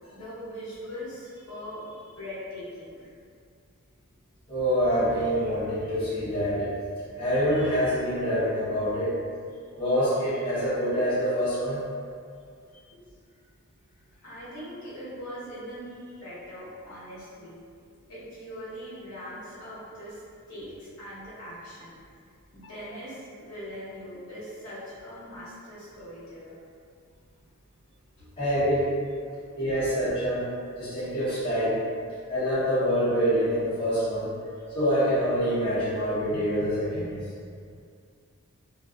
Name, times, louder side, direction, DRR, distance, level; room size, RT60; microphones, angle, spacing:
voice 1, 0.0-3.1 12.9-13.0 14.2-17.6 18.1-20.2 20.5-22.0 22.5-26.6 28.2-28.3 29.2-29.9, equal, 65° left, -11 dB, 0.9 m, -41 dB
voice 2, 4.5-6.7 7.2-9.1 9.7-11.8 28.4-28.9 29.6-30.5 30.8-31.8 32.3-34.3 34.7-37.3, equal, 25° left, -13 dB, 0.7 m, -26 dB
2.4 x 2.2 x 2.3 m, 2.2 s
head